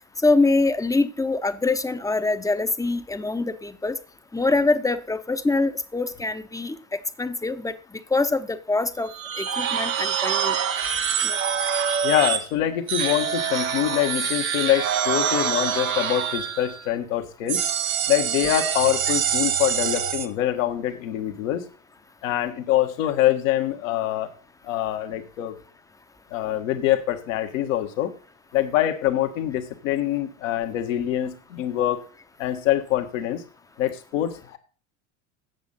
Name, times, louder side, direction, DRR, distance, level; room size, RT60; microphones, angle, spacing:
voice 1, 0.2-4.0 4.3-6.8 7.2-9.1 9.4-10.6 11.2-11.4, left 3 dB, 10° left, 11 dB, 0.8 m, -24 dB
sound 1, 9.1-12.5 12.9-16.9 17.5-20.3, right 8 dB, 85° right, 1.1 m, -25 dB
voice 2, 12.0-17.6 18.1-21.7 22.2-24.3 24.6-25.6 26.3-28.1 28.5-32.0 32.4-33.4 33.8-34.6, left 12 dB, 70° left, 6 dB, 1.6 m, -24 dB
8.3 x 7.4 x 5.5 m, 0.40 s
hypercardioid pair, 80°, 41 cm